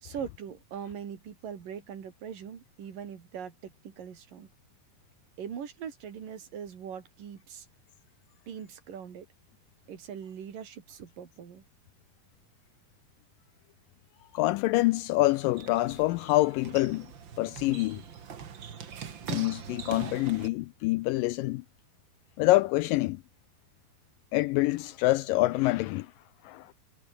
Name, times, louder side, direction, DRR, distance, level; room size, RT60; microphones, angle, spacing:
voice 1, 0.0-4.5 5.4-7.7 8.5-9.3 9.9-11.6, right 8 dB, 60° right, 4.3 m, -41 dB
voice 2, 14.3-17.1 17.4-18.0 19.3-21.6 22.4-23.2 24.3-26.1 26.4-26.7, left 19 dB, 85° left, 2.0 m, -26 dB
sound 1, 14.9-20.5, right 7 dB, 45° right, 1.7 m, -42 dB
omnidirectional pair, 4.4 m